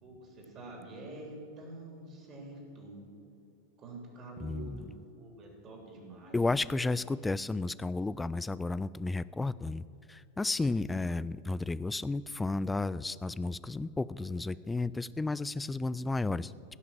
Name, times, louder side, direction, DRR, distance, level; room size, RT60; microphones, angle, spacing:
voice 1, 0.0-3.1 3.8-6.4 6.8-6.9 11.5-11.7, right 2 dB, 30° right, 1 dB, 3.2 m, -47 dB
voice 2, 4.4-4.9 6.3-16.5, left 3 dB, 10° left, 18 dB, 0.3 m, -33 dB
16.5 x 5.9 x 7.4 m, 2.8 s
figure-of-eight pair, 90°, 0 cm